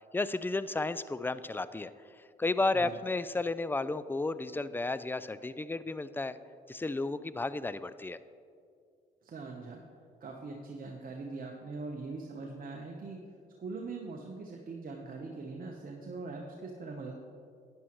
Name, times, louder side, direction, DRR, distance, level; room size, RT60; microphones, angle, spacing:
voice 1, 0.1-1.9 2.4-6.4 6.7-8.2, left 3 dB, 10° left, 15 dB, 0.3 m, -33 dB
voice 2, 9.2-9.8 10.2-13.2 13.6-17.1, right 3 dB, 45° right, 1 dB, 1.0 m, -42 dB
11.0 x 9.8 x 3.1 m, 2.3 s
supercardioid pair, 65°, 19 cm